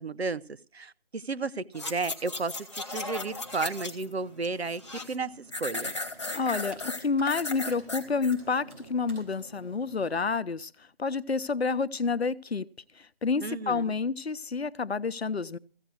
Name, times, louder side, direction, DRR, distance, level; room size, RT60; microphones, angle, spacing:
voice 1, 0.0-4.8 5.1-5.9 13.4-13.9, right 4 dB, 90° right, 0.9 m, -33 dB
sound 1, 1.7-4.1 4.4-5.2 5.5-8.4 8.8-8.9, left 2 dB, 30° left, 1.4 m, -36 dB
Computer keyboard, 2.9-10.2, right 2 dB, 10° right, 5.8 m, -52 dB
voice 2, 6.3-12.7 12.9-15.6, left 4 dB, 85° left, 0.8 m, -29 dB
15.0 x 8.1 x 6.3 m
figure-of-eight pair, 170°, 31 cm